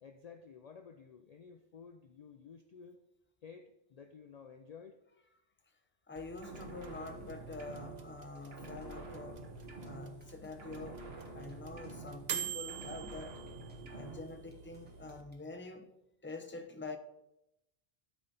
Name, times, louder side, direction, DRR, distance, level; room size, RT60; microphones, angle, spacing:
voice 1, 0.0-3.0 3.4-5.0, left 6 dB, 50° left, 0.5 m, -53 dB
voice 2, 6.1-9.5 9.8-11.0 11.3-13.4 13.9-15.9 16.2-17.0, left 3 dB, 15° left, 0.6 m, -46 dB
sound 1, 6.2-15.2, right 7 dB, 45° right, 0.8 m, -47 dB
sound 2, 6.4-8.3 8.5-10.3 10.6-12.4 12.7-14.4, right 2 dB, 75° right, 1.5 m, -48 dB
sound 3, 8.3-9.1 9.6-9.9 10.2-10.5 10.8-10.9 11.2-11.6 11.8-12.1 12.5-12.6 12.9-13.2 13.5-13.8 14.3-15.5, equal, 10° right, 1.7 m, -69 dB
12.5 x 4.2 x 5.3 m
omnidirectional pair, 1.0 m